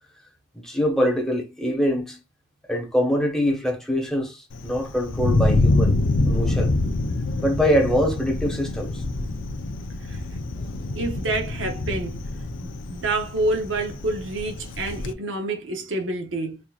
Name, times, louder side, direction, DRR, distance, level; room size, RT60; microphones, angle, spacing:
voice 1, 0.5-2.2 2.7-6.0 6.3-6.7 7.4-9.0, equal, 5° left, 1.0 m, -24 dB
Thunder, 4.5-15.1, left 2 dB, 90° left, 0.5 m, -26 dB
voice 2, 10.9-12.2 12.6-16.6, right 2 dB, 85° right, 0.9 m, -28 dB
4.4 x 2.7 x 2.3 m
head